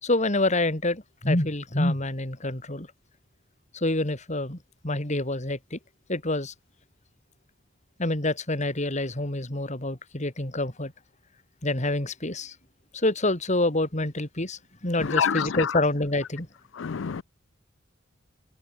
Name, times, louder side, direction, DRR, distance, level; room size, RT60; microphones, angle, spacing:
voice 1, 0.0-2.9 3.7-4.6 4.8-5.8 6.1-6.5 8.0-10.9 11.6-12.6 12.9-16.5, left 2 dB, 40° left, 3.8 m, -27 dB
voice 2, 15.1-15.7 16.8-17.2, left 7 dB, 85° left, 0.5 m, -26 dB
head